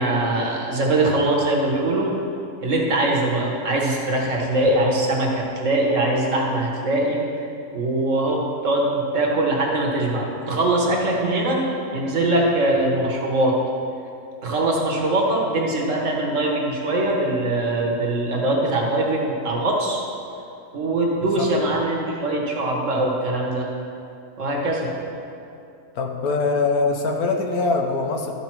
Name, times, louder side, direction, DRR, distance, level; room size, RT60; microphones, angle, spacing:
voice 1, 0.0-2.1 2.6-7.2 7.7-13.6 14.4-20.0 20.7-23.7 24.4-24.9, right 2 dB, 55° right, -1 dB, 1.4 m, -22 dB
voice 2, 25.9-28.3, left 3 dB, 70° left, 3 dB, 1.2 m, -22 dB
12.5 x 5.0 x 4.5 m, 2.6 s
omnidirectional pair, 1.7 m